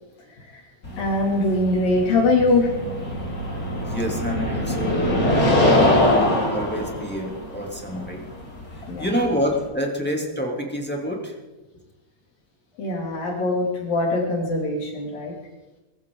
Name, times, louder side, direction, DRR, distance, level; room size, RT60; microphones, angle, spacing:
sound 1, 0.8-9.7, left 1 dB, 20° left, 4.0 m, -23 dB
voice 1, 0.9-2.7 8.9-9.1 12.8-15.3, left 2 dB, 55° left, -1 dB, 4.3 m, -22 dB
voice 2, 3.7-5.3 5.6-8.2 9.0-11.4, equal, 5° left, -1 dB, 1.4 m, -28 dB
22.0 x 15.5 x 3.9 m, 1.1 s
omnidirectional pair, 5.1 m